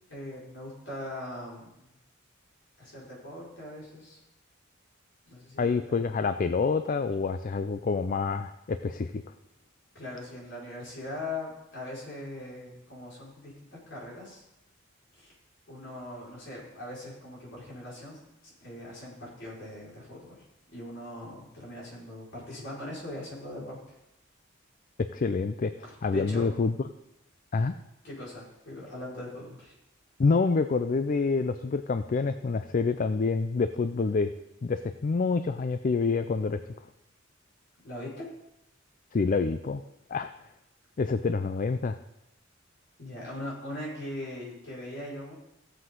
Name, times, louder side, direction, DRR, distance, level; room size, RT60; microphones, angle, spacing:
voice 1, 0.1-1.9 2.8-4.2 5.3-6.0 9.9-14.4 15.1-15.3 15.7-20.4 20.7-24.0 26.1-26.5 28.0-29.7 37.8-38.3 43.0-45.3, left 1 dB, 60° left, -6 dB, 5.0 m, -40 dB
voice 2, 5.6-9.2 25.0-25.7 26.0-26.7 27.5-27.8 30.2-34.3 34.6-36.6 39.1-39.8 40.1-40.3 41.0-42.0, left 4 dB, 40° left, 10 dB, 0.4 m, -27 dB
16.0 x 7.7 x 3.8 m, 0.89 s
head